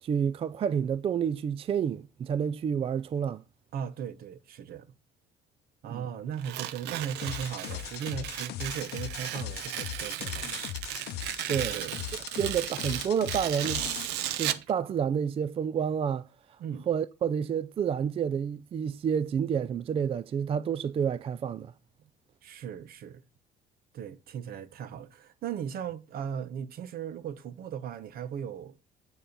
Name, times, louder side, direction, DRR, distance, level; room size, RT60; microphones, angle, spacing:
voice 1, 0.0-3.4 5.9-6.0 11.5-11.8 12.4-13.9 14.4-16.3 16.9-21.7, right 7 dB, 35° right, 0.3 m, -29 dB
voice 2, 3.7-4.9 5.8-10.6 11.7-12.0 16.6-16.9 22.4-23.2 23.9-28.8, right 8 dB, 60° right, 0.9 m, -37 dB
Tearing, 6.4-14.7, right 13 dB, 90° right, 0.7 m, -35 dB
sound 1, 7.2-14.1, left 13 dB, 75° left, 0.6 m, -39 dB
9.2 x 4.4 x 5.1 m
cardioid pair, 110°, 17 cm